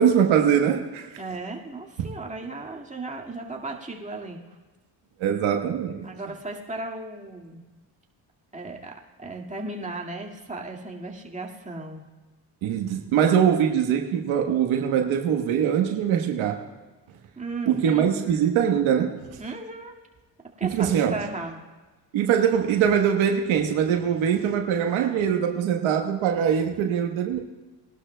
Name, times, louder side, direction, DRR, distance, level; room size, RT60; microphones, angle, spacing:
voice 1, 0.0-1.1 2.0-2.1 5.2-6.1 12.6-16.6 17.7-19.2 20.6-21.2 22.1-27.4, right 8 dB, 80° right, 4 dB, 1.3 m, -22 dB
voice 2, 1.2-4.5 6.0-7.6 8.5-12.0 17.4-18.1 19.4-19.9 20.6-21.6, right 2 dB, 15° right, 0 dB, 1.9 m, -35 dB
21.5 x 11.5 x 2.2 m, 1.2 s
cardioid pair, 80°, 47 cm